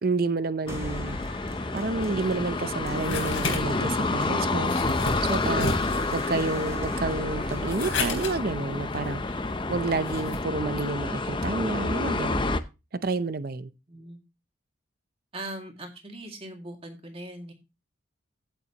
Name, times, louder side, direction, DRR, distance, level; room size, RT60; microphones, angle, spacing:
voice 1, 0.0-1.2 1.7-4.7 5.2-9.4 9.7-12.6 13.0-13.7, right 3 dB, 50° right, 0.6 m, -29 dB
sound 1, 0.7-12.6, left 3 dB, 25° left, 0.6 m, -29 dB
sound 2, 0.7-9.7, right 1 dB, 15° right, 0.9 m, -44 dB
sound 3, 2.2-10.4, left 3 dB, 80° left, 3.9 m, -34 dB
voice 2, 13.9-14.2 15.3-17.5, right 1 dB, 30° right, 2.1 m, -40 dB
15.5 x 6.9 x 2.9 m
head